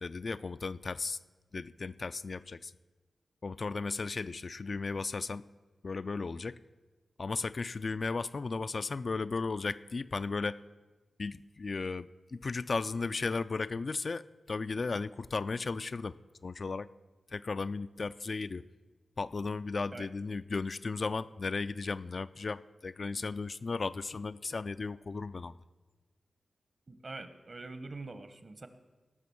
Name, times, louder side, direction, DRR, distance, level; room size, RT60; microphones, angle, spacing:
voice 1, 0.0-1.2 1.5-2.7 3.4-5.5 5.8-6.6 7.2-10.6 11.2-16.2 16.4-16.9 17.3-18.7 19.2-25.6, left 4 dB, 50° left, 13 dB, 0.3 m, -35 dB
voice 2, 26.9-28.7, right 3 dB, 45° right, 10 dB, 1.0 m, -44 dB
17.5 x 6.0 x 7.1 m, 1.2 s
wide cardioid pair, 80°, 0 cm